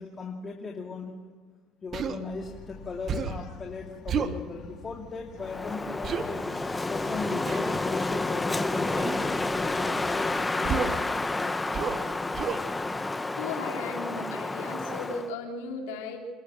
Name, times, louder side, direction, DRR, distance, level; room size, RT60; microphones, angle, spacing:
voice 1, 0.0-1.3 1.8-6.5 6.9-11.6, left 4 dB, 30° left, 1 dB, 2.6 m, -38 dB
Human voice, 1.9-2.2 3.1-3.5 4.1-4.4 6.0-6.3 7.5-7.8 9.0-9.3 10.6-11.0 11.7-12.0 12.3-12.6, right 6 dB, 45° right, 1.6 m, -30 dB
Bark, 2.3-10.5, left 5 dB, 55° left, 2.8 m, -48 dB
Wind, 5.4-15.3, left 2 dB, 15° left, 1.2 m, -30 dB
voice 2, 13.4-16.2, left 4 dB, 80° left, 3 dB, 3.3 m, -36 dB
27.5 x 13.0 x 7.5 m, 1.5 s
supercardioid pair, 80°, 0 cm